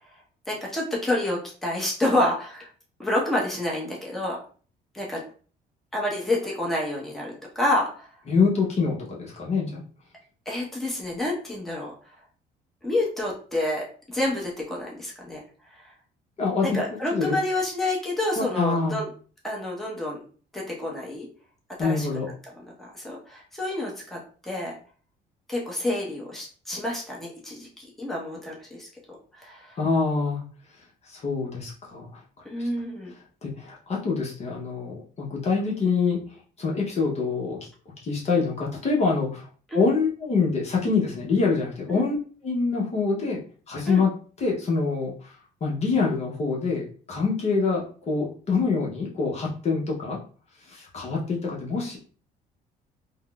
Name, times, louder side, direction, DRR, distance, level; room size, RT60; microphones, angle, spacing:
voice 1, 0.5-2.7 3.0-4.4 4.9-5.2 5.9-8.1 10.5-11.9 12.8-15.4 16.6-19.1 19.4-20.2 20.5-21.3 21.8-22.1 22.8-24.8 25.5-28.9 29.4-29.8 32.4-33.1 39.7-39.8 41.9-42.0 43.9-44.0, left 1 dB, ahead, -3 dB, 0.8 m, -28 dB
voice 2, 8.3-9.8 16.4-16.8 17.1-17.3 18.4-19.0 21.8-22.3 29.8-30.4 31.1-32.2 33.4-36.2 36.6-37.6 38.0-39.5 39.7-42.2 42.4-43.4 43.7-44.1 44.4-45.4 45.6-50.2 50.6-52.0, left 4 dB, 40° left, -3 dB, 0.8 m, -25 dB
3.5 x 2.0 x 2.3 m, 0.41 s
cardioid pair, 110°, 17 cm